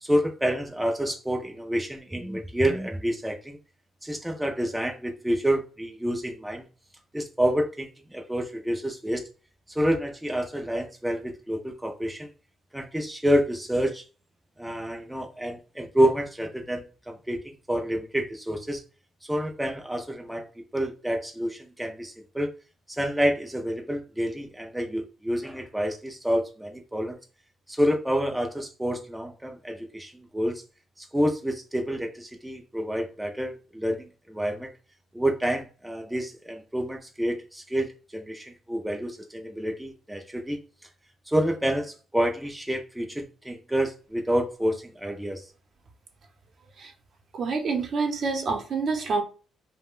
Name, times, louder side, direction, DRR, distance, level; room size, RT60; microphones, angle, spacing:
voice 1, 0.0-3.6 4.0-6.6 7.1-9.2 9.7-12.3 12.7-14.0 14.6-18.8 19.3-22.5 22.9-27.2 27.7-30.6 31.0-34.7 35.1-40.6 41.3-45.5, equal, 5° right, 0.4 m, -28 dB
voice 2, 47.3-49.2, right 4 dB, 55° right, 0.7 m, -27 dB
2.3 x 2.1 x 3.5 m
cardioid pair, 90°, 0 cm